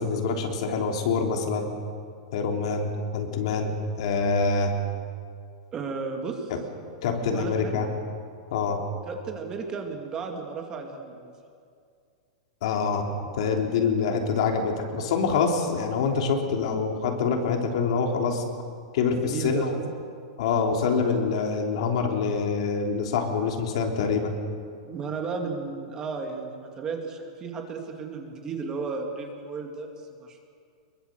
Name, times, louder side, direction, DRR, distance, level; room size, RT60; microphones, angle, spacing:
voice 1, 0.0-1.7 2.3-4.7 7.0-7.9 8.5-8.9 12.6-13.1 13.3-18.4 18.9-19.7 20.4-24.3, left 5 dB, 55° left, 3 dB, 3.5 m, -25 dB
voice 2, 5.7-6.5 7.3-7.8 9.1-11.3 19.2-20.0 24.9-30.4, right 4 dB, 15° right, 3 dB, 2.2 m, -34 dB
25.0 x 22.5 x 7.9 m, 2.2 s
supercardioid pair, 175°, 4 cm